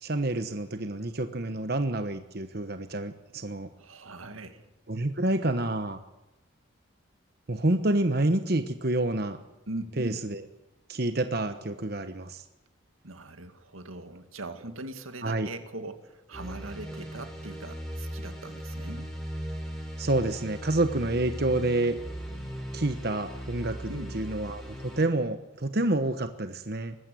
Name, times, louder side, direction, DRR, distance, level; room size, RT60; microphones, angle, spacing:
voice 1, 0.0-3.7 4.9-6.0 7.5-9.4 10.0-10.4 10.9-12.4 15.2-15.5 20.0-22.0 22.7-27.0, right 2 dB, 50° right, 8 dB, 1.1 m, -28 dB
voice 2, 3.8-4.7 9.7-10.2 13.0-19.1 23.9-24.2, right 2 dB, 90° right, 8 dB, 2.3 m, -40 dB
sound 1, 16.3-25.1, equal, ahead, 4.5 m, -38 dB
21.0 x 15.5 x 9.3 m, 1.0 s
head